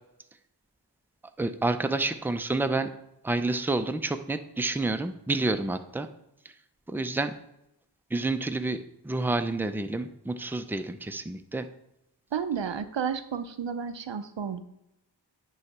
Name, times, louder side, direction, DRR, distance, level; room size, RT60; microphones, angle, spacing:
voice 1, 1.4-2.9 3.2-6.1 6.9-7.3 8.1-8.8 9.0-11.7, right 2 dB, 5° right, 9 dB, 0.5 m, -29 dB
voice 2, 12.3-14.6, right 7 dB, 85° right, 11 dB, 0.6 m, -32 dB
9.6 x 3.2 x 5.9 m, 0.85 s
wide cardioid pair, 45°, 43 cm